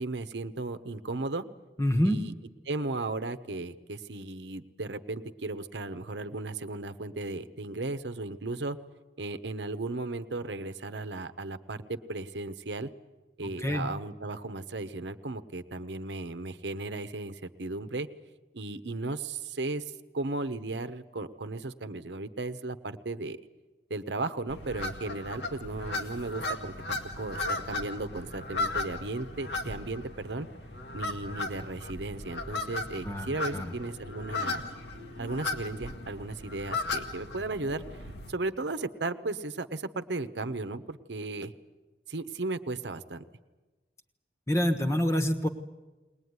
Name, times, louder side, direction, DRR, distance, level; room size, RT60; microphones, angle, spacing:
voice 1, 0.0-1.4 2.0-2.3 2.7-8.8 9.2-12.9 13.4-18.1 18.5-19.8 20.1-23.4 23.9-30.5 30.9-34.6 35.2-37.8 38.3-41.5 42.1-43.2, right 2 dB, 80° right, 11 dB, 1.0 m, -35 dB
voice 2, 1.8-2.2 13.6-13.9 33.0-33.7 44.5-45.5, equal, 15° left, 7 dB, 1.3 m, -27 dB
sound 1, 24.5-38.3, left 3 dB, 75° left, 1.7 m, -36 dB
21.0 x 19.5 x 9.6 m, 1.2 s
head